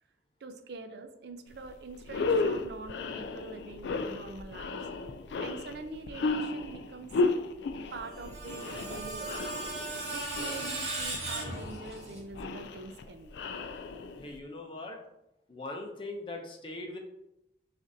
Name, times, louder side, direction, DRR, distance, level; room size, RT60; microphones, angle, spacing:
voice 1, 0.4-4.9 5.4-7.4 7.9-9.5 10.1-13.4, right 3 dB, 70° right, 8 dB, 0.4 m, -44 dB
sound 1, 1.5-1.7 2.0-14.4, left 3 dB, 80° left, 0.3 m, -34 dB
Screech, 7.9-12.2, right 2 dB, 40° right, 1.6 m, -37 dB
voice 2, 14.2-15.1 15.5-17.0, left 2 dB, 30° left, 2 dB, 0.6 m, -40 dB
6.4 x 2.5 x 2.7 m, 0.84 s
head